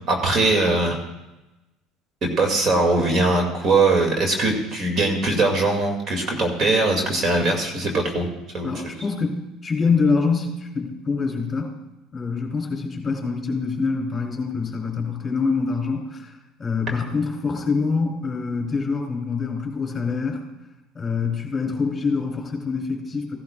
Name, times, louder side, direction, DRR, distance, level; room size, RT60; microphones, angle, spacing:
voice 1, 0.1-1.0 2.2-8.3 8.5-9.0, right 2 dB, 45° right, 1 dB, 2.4 m, -21 dB
voice 2, 8.6-11.7 12.1-20.5 21.0-23.4, left 4 dB, 25° left, 0 dB, 3.4 m, -25 dB
16.0 x 12.0 x 2.4 m, 1.0 s
supercardioid pair, 90°, 0 cm